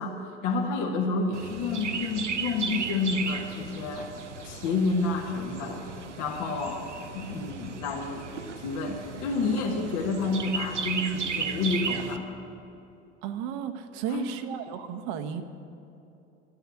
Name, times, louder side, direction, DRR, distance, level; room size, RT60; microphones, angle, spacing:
voice 1, 0.0-4.1 4.4-5.8 6.2-6.8 7.1-8.3 8.6-12.2 14.1-14.3, left 3 dB, 55° left, 1 dB, 1.5 m, -29 dB
Chirp tweet, 1.3-12.2, right 5 dB, 90° right, 0.7 m, -35 dB
voice 2, 13.2-15.4, right 8 dB, 55° right, 8 dB, 1.0 m, -34 dB
12.5 x 9.5 x 8.2 m, 2.8 s
figure-of-eight pair, 65°, 34 cm